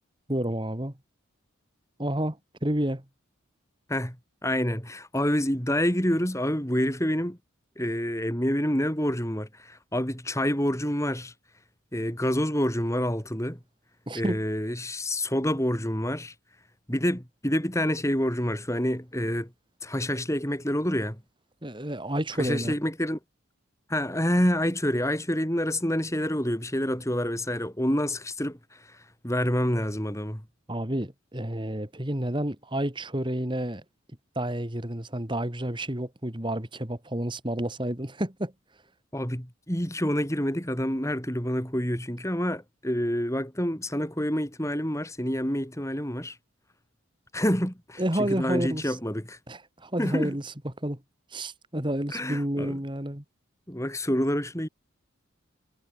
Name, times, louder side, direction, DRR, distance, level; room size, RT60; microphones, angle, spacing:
voice 1, 0.3-0.9 2.0-3.0 14.1-14.4 21.6-22.7 30.7-33.8 34.4-38.5 48.0-49.0 49.5-51.0 51.3-53.2, right 1 dB, 20° right, 2.1 m, -30 dB
voice 2, 4.4-7.4 7.8-11.3 11.9-13.6 14.1-16.3 16.9-19.5 19.8-21.2 22.4-23.2 23.9-30.4 39.1-46.4 47.3-49.4 50.0-50.3 52.1-52.8 53.7-54.7, equal, 15° left, 4.5 m, -27 dB
head